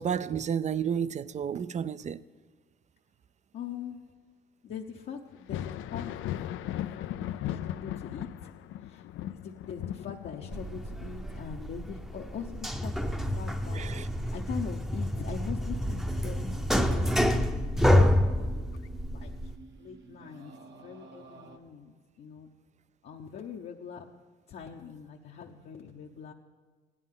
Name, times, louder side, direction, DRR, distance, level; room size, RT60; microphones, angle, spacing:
voice 1, 0.0-2.2 13.7-14.1, right 8 dB, 35° right, 0.4 m, -31 dB
voice 2, 3.5-4.0 4.6-5.6 5.9-6.5 7.0-8.5 8.9-9.0 9.4-17.9 18.4-18.7 19.1-19.3 19.8-20.5 20.8-21.9 22.2-22.5 23.0-24.1 24.5-26.3, left 7 dB, 60° left, 0.8 m, -42 dB
Thunder, 5.3-14.7 15.1-16.3 17.8-17.9 18.7-18.9, left 12 dB, 80° left, 0.4 m, -38 dB
sound 1, 10.5-19.5, equal, ahead, 0.7 m, -28 dB
sound 2, 16.0-21.6, right 3 dB, 65° right, 1.3 m, -50 dB
16.5 x 11.0 x 3.7 m
cardioid pair, 90°, 20 cm